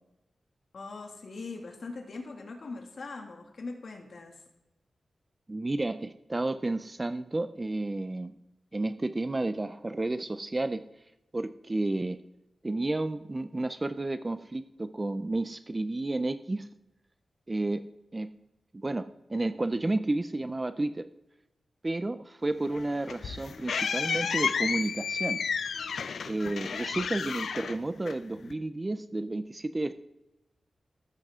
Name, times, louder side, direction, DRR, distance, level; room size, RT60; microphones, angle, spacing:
voice 1, 0.7-4.4, left 3 dB, 50° left, 3 dB, 2.1 m, -41 dB
voice 2, 5.5-8.4 8.7-10.8 11.3-12.2 12.6-16.7 17.5-17.8 18.1-18.3 18.7-21.1 21.8-25.4 26.3-29.9, right 2 dB, 20° right, 11 dB, 0.4 m, -31 dB
sound 1, 22.7-28.5, left 6 dB, 85° left, 0.5 m, -32 dB
14.0 x 13.5 x 3.6 m, 0.92 s
wide cardioid pair, 175°, 0 cm